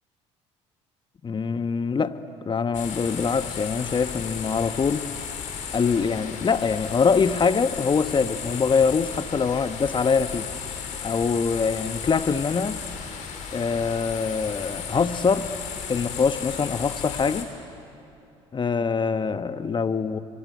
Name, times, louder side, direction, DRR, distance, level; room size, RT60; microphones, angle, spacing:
voice 1, 1.2-2.2 2.5-5.1 5.7-10.5 11.0-12.8 13.5-15.5 15.9-17.5 18.5-20.2, left 5 dB, 35° left, 11 dB, 1.3 m, -24 dB
sound 1, 2.7-17.4, left 7 dB, 60° left, 3.7 m, -35 dB
26.5 x 24.0 x 9.0 m, 2.7 s
hypercardioid pair, 60°, 15 cm